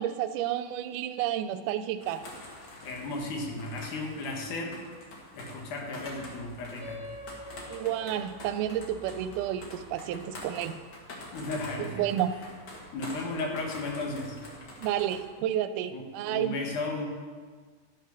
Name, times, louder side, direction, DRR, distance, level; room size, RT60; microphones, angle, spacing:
voice 1, 0.0-2.2 7.7-10.7 11.8-12.3 14.8-16.6, right 11 dB, 85° right, 11 dB, 2.1 m, -31 dB
sound 1, 2.0-15.3, left 1 dB, 40° left, 1.8 m, -46 dB
voice 2, 2.8-4.8 5.3-7.0 11.3-12.0 12.9-14.4 15.9-17.1, left 2 dB, 75° left, 1 dB, 2.9 m, -35 dB
sound 2, 6.8-11.7, left 1 dB, 10° right, 2.0 m, -48 dB
12.0 x 5.8 x 6.2 m, 1.5 s
omnidirectional pair, 3.6 m